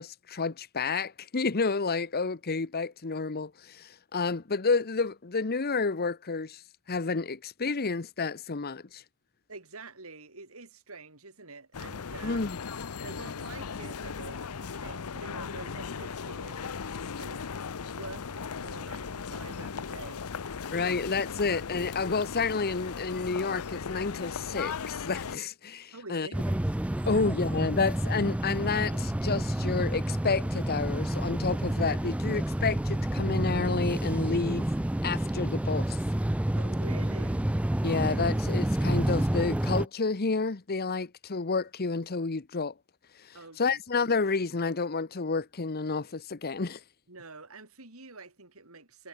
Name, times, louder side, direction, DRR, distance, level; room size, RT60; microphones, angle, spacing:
voice 1, 0.0-6.6 6.9-9.0 12.2-12.6 20.7-26.3 27.1-34.7 35.0-36.0 37.8-42.7 43.6-46.8, left 4 dB, 45° left, 0.9 m, -30 dB
voice 2, 9.5-12.4 13.0-17.4 17.8-20.3 20.8-21.0 25.9-26.6 27.1-27.3 36.5-37.5 43.3-43.8 47.1-49.1, right 3 dB, 70° right, 4.2 m, -47 dB
sound 1, 11.7-25.4, left 5 dB, 90° left, 0.7 m, -37 dB
sound 2, 26.3-39.9, right 1 dB, 5° right, 0.3 m, -29 dB
head